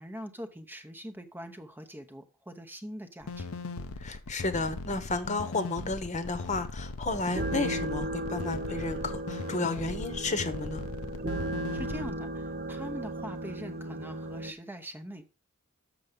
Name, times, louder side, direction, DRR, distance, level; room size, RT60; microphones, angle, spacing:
voice 1, 0.0-3.5 11.7-15.2, equal, 10° right, 0.8 m, -42 dB
sound 1, 3.2-12.1, left 3 dB, 85° left, 0.7 m, -39 dB
voice 2, 4.0-10.8, left 3 dB, 35° left, 1.1 m, -32 dB
sound 2, 7.1-14.5, right 1 dB, 45° right, 0.6 m, -36 dB
7.0 x 6.8 x 5.0 m
head